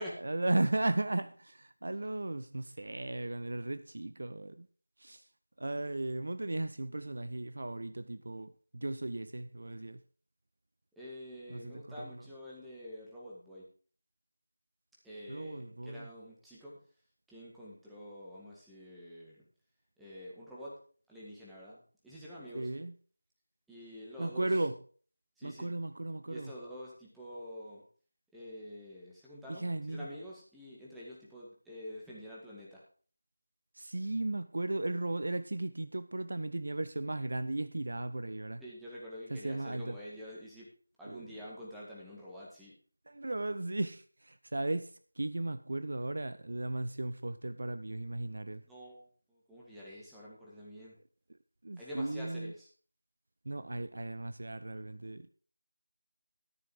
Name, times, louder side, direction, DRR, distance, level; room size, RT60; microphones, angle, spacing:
voice 1, 0.0-4.7 5.0-5.3 5.6-10.0 11.5-12.2 15.3-16.1 22.5-22.9 24.2-24.8 25.4-26.5 29.5-30.1 33.7-38.6 39.3-40.0 41.0-41.3 43.1-48.6 51.6-52.5 53.5-55.3, right 2 dB, 50° right, 0.6 m, -36 dB
voice 2, 11.0-13.6 15.0-16.8 17.3-19.4 20.0-20.8 21.1-22.7 23.7-24.5 25.4-25.7 26.3-27.8 28.3-32.8 38.6-40.7 41.0-42.7 48.7-51.0 51.8-52.7, equal, ahead, 2.0 m, -47 dB
13.5 x 6.7 x 5.1 m
figure-of-eight pair, 165°, 0 cm